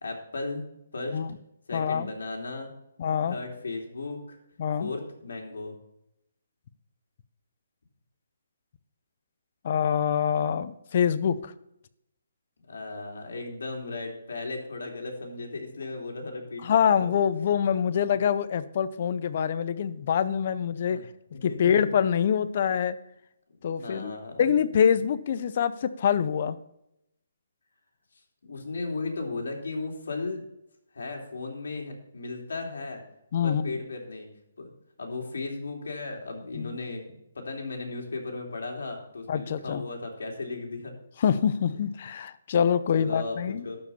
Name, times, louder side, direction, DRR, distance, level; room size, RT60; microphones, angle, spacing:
voice 1, 0.0-0.6 0.9-1.2 1.7-2.7 3.3-4.4 4.8-5.7 12.7-17.1 20.7-21.0 21.3-21.9 23.6-24.5 28.4-30.4 30.9-33.0 33.4-34.3 34.6-34.7 35.0-40.9 42.9-43.8, left 3 dB, 75° left, 1 dB, 3.0 m, -36 dB
voice 2, 1.7-2.1 3.0-3.4 4.6-4.9 9.6-11.5 16.6-21.0 21.4-23.0 23.6-24.1 24.4-26.6 33.3-33.7 36.5-36.8 39.3-39.8 41.2-43.6, left 8 dB, 40° left, 14 dB, 0.6 m, -25 dB
12.5 x 5.1 x 6.9 m, 0.81 s
hypercardioid pair, 165°, 0 cm